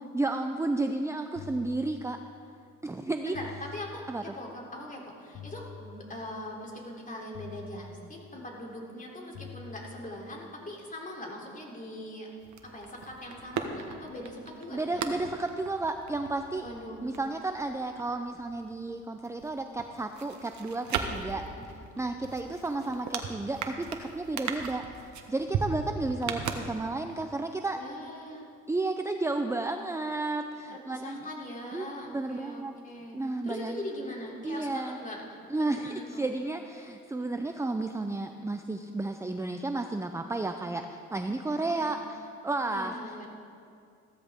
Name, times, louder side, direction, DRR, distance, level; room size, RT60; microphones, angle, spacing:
voice 1, 0.0-2.2 2.8-3.4 4.1-4.2 14.7-16.7 17.0-21.4 22.0-24.8 25.3-27.8 28.7-31.3 31.7-32.8 33.1-33.8 34.4-35.0 35.5-42.2 42.4-43.0, right 2 dB, 10° right, 6 dB, 0.6 m, -32 dB
sound 1, 1.4-2.5 3.3-4.5 5.3-6.5 7.3-8.5 9.3-10.5, left 7 dB, 65° left, 1.0 m, -47 dB
voice 2, 3.2-12.3 12.6-15.1 16.6-17.0 21.2-21.3 21.6-21.7 25.7-25.8 27.7-28.5 30.7-33.2 33.4-35.2 35.6-36.2 41.6-41.9 42.6-43.3, left 1 dB, 25° left, -2 dB, 3.3 m, -41 dB
sound 2, 12.4-18.9 19.2-27.2 27.5-27.6, right 6 dB, 70° right, 1.3 m, -38 dB
15.5 x 14.0 x 3.6 m, 2.4 s
cardioid pair, 90°, 30 cm